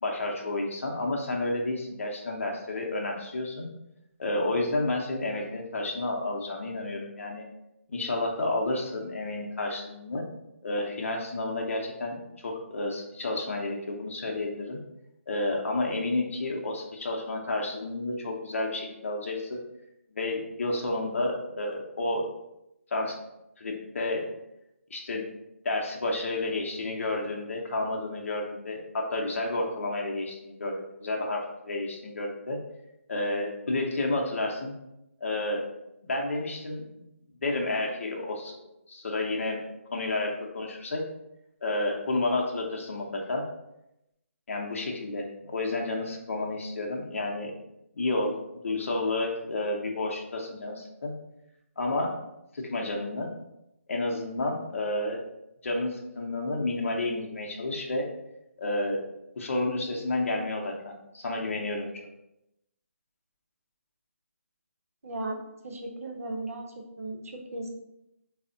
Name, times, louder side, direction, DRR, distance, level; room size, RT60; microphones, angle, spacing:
voice 1, 0.0-3.7 4.2-7.4 7.9-10.3 10.6-14.8 15.3-19.6 20.1-22.3 22.9-23.2 23.6-24.3 24.9-25.2 25.6-32.6 33.1-34.7 35.2-35.7 36.0-36.8 37.4-38.6 38.9-39.6 39.9-41.0 41.6-43.4 44.5-47.5 47.9-48.4 48.6-51.1 51.8-52.2 52.5-53.3 53.9-55.2 55.6-58.1 58.6-59.1 59.4-61.9, left 2 dB, 65° left, 0 dB, 0.6 m, -30 dB
voice 2, 65.0-65.4 65.6-67.7, right 2 dB, 75° right, 1 dB, 0.6 m, -36 dB
3.3 x 2.1 x 2.5 m, 0.86 s
figure-of-eight pair, 160°, 8 cm